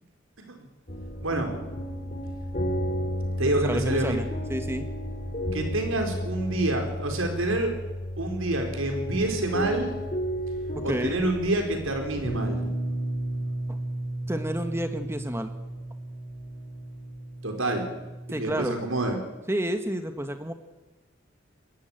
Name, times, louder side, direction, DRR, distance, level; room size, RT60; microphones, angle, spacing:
sound 1, 0.9-18.7, equal, 35° left, 3.8 m, -33 dB
voice 1, 1.2-1.5 3.4-4.2 5.5-7.7 8.2-10.0 10.8-12.7 17.4-17.9 18.4-19.2, right 2 dB, 85° right, 4 dB, 4.5 m, -27 dB
voice 2, 3.5-4.9 10.7-11.2 14.3-15.5 18.3-18.7 19.5-20.5, right 1 dB, 10° right, 8 dB, 1.3 m, -30 dB
21.5 x 14.5 x 9.0 m, 1.1 s
head